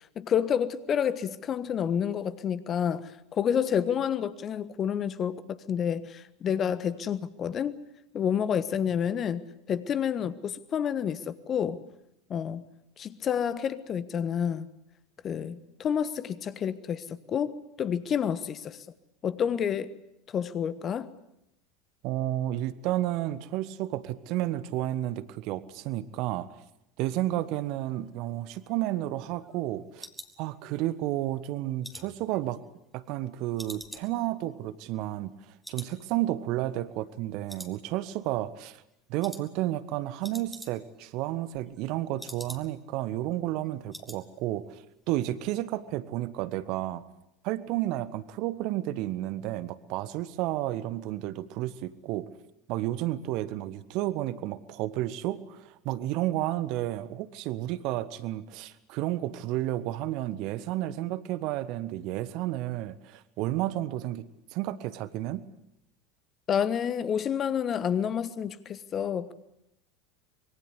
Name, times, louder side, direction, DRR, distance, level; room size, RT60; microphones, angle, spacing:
voice 1, 0.1-7.7 8.1-9.4 9.7-11.8 12.3-12.6 13.0-14.7 15.2-18.8 19.2-19.9 20.3-21.1 66.5-69.3, left 8 dB, 35° left, 15 dB, 1.4 m, -29 dB
voice 2, 22.0-26.5 27.0-30.1 30.4-32.6 32.9-35.3 35.7-38.8 39.1-44.8 45.1-47.0 47.4-52.3 52.7-65.4, right 14 dB, 50° right, 16 dB, 1.3 m, -31 dB
sound 1, 28.3-31.1 31.4-33.2 33.6-35.4 35.6-36.0 36.3-36.4 36.8-37.2 37.5-38.3 38.6-38.8 39.2-39.5 39.8-39.9 40.1-41.0 41.3-42.9 43.3-43.4 43.6-44.2 44.5-44.8 45.1-45.2, equal, 5° left, 2.4 m, -47 dB
25.0 x 22.5 x 8.2 m, 0.80 s
figure-of-eight pair, 75°, 0 cm